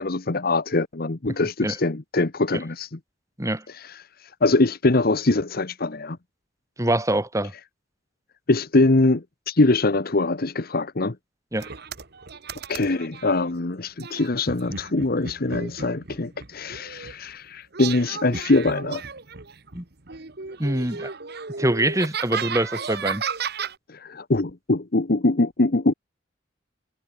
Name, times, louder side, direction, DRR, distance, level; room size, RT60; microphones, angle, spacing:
voice 1, 0.0-3.0 3.7-6.2 8.5-11.2 12.7-19.0 23.9-25.9, left 2 dB, 55° left, 1.1 m, -23 dB
voice 2, 6.8-7.5 11.5-11.7 19.7-19.8 20.6-21.1 21.6-23.2, right 1 dB, 15° right, 3.1 m, -24 dB
sound 1, 11.6-13.3 14.0-17.3 17.7-19.8 20.1-23.7, right 5 dB, 60° right, 1.7 m, -34 dB
head